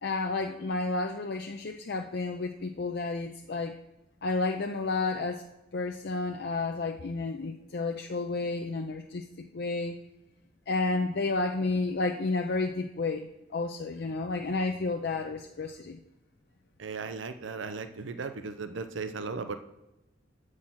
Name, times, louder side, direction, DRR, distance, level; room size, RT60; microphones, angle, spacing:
voice 1, 0.0-3.8 4.2-5.4 5.7-9.9 10.7-16.0, left 3 dB, 55° left, 4 dB, 0.5 m, -31 dB
voice 2, 16.8-19.6, right 4 dB, 85° right, 10 dB, 0.6 m, -36 dB
7.6 x 6.3 x 5.6 m, 0.95 s
head